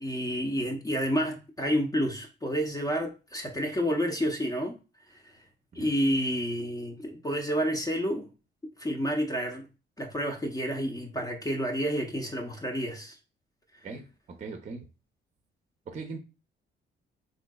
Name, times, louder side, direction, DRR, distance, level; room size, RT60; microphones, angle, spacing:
voice 1, 0.0-4.8 5.1-5.4 5.7-8.3 8.8-9.7 10.0-13.2, equal, 20° left, 0.6 m, -29 dB
voice 2, 14.4-14.9 15.9-16.2, right 4 dB, 35° right, 0.6 m, -39 dB
3.7 x 2.6 x 2.2 m
cardioid pair, 90°, 20 cm